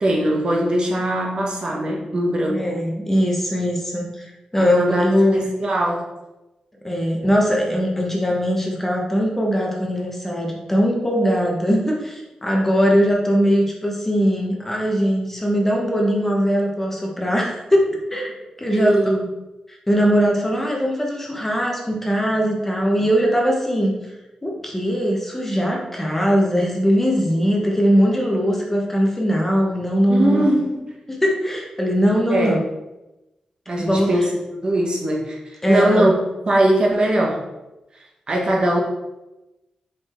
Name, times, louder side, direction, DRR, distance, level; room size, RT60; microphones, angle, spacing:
voice 1, 0.0-2.6 4.6-6.1 18.7-19.2 30.1-30.8 32.3-32.6 33.7-36.1 36.4-37.4 38.3-38.8, right 1 dB, 45° right, 0 dB, 1.1 m, -20 dB
voice 2, 2.5-5.5 6.8-18.9 19.7-23.9 24.4-30.4 31.1-32.6 33.8-34.1 35.6-36.1, equal, 15° left, -1 dB, 1.1 m, -20 dB
4.9 x 4.3 x 4.4 m, 0.99 s
wide cardioid pair, 120°, 2 cm